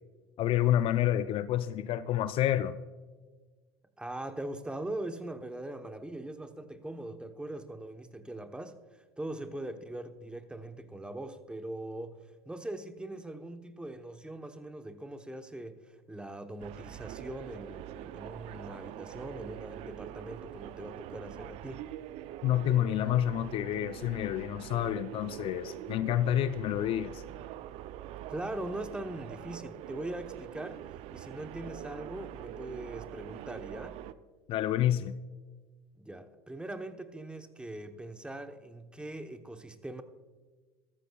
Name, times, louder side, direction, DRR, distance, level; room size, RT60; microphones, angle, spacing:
voice 1, 0.4-2.8 22.4-27.2 34.5-35.1, left 12 dB, 45° left, 14 dB, 0.4 m, -28 dB
voice 2, 4.0-12.2 12.5-21.8 28.3-30.8 31.1-34.0 36.0-40.0, right 1 dB, 5° right, 8 dB, 0.9 m, -41 dB
sound 1, 16.6-34.1, right 12 dB, 50° right, 0.5 m, -44 dB
15.0 x 13.5 x 2.3 m, 1.4 s
hypercardioid pair, 80°, 13 cm